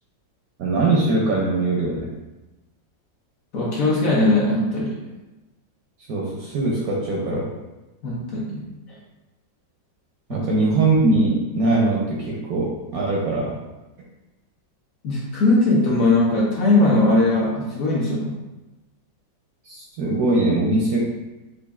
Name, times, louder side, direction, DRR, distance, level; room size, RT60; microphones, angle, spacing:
voice 1, 0.6-2.1 6.1-7.5 10.3-13.6 19.6-21.0, right 2 dB, 70° right, -3 dB, 0.9 m, -21 dB
voice 2, 3.5-4.9 8.0-8.7 10.3-10.5 15.0-18.3, left 2 dB, 60° left, -6 dB, 1.0 m, -19 dB
5.2 x 2.4 x 2.3 m, 1.0 s
omnidirectional pair, 1.9 m